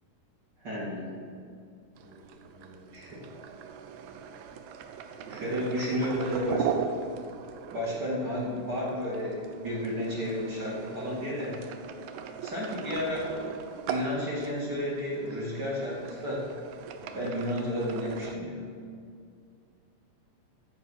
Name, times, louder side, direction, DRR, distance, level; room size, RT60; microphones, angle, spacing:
voice 1, 0.6-1.1 2.9-3.2 5.3-6.7 7.7-11.7 12.4-13.4 13.9-16.5 17.1-18.7, equal, 35° right, -6 dB, 2.6 m, -32 dB
voice 2, 2.0-3.1 5.2-5.9 7.8-8.0 17.0-17.4, right 2 dB, 55° right, -3 dB, 2.7 m, -50 dB
sound 1, 2.0-18.4, right 7 dB, 75° right, 1.8 m, -39 dB
11.5 x 7.8 x 6.4 m, 2.3 s
omnidirectional pair, 3.9 m